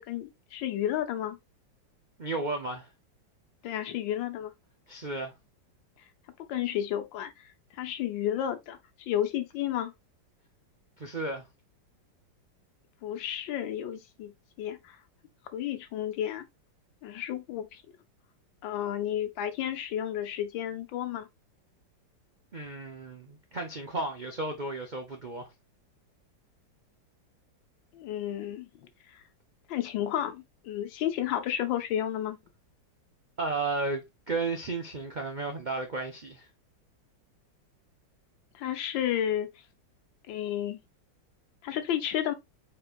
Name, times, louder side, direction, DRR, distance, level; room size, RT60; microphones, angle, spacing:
voice 1, 0.0-1.4 3.6-4.5 6.5-9.9 13.0-14.3 14.6-15.0 15.5-16.4 17.0-17.8 18.6-21.3 27.9-28.7 29.1-29.2 29.7-32.4 38.5-39.5 40.3-40.8 41.6-42.3, left 11 dB, 80° left, 1.4 m, -32 dB
voice 2, 2.2-2.9 4.9-5.3 11.0-11.5 22.5-25.5 33.4-36.5, right 3 dB, 70° right, 0.4 m, -33 dB
4.5 x 4.2 x 2.4 m
omnidirectional pair, 2.0 m